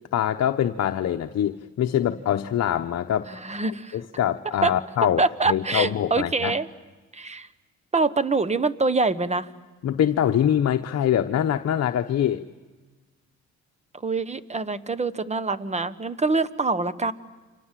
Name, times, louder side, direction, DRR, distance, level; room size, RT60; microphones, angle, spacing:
voice 1, 0.1-3.3 3.9-5.2 5.5-6.5 9.8-12.4, left 10 dB, 55° left, 6 dB, 1.0 m, -24 dB
voice 2, 3.3-4.0 4.6-4.7 5.2-6.7 7.1-7.5 7.9-9.5 14.0-17.1, right 3 dB, 20° right, 14 dB, 1.3 m, -25 dB
30.0 x 26.0 x 7.6 m, 1.3 s
cardioid pair, 90°, 30 cm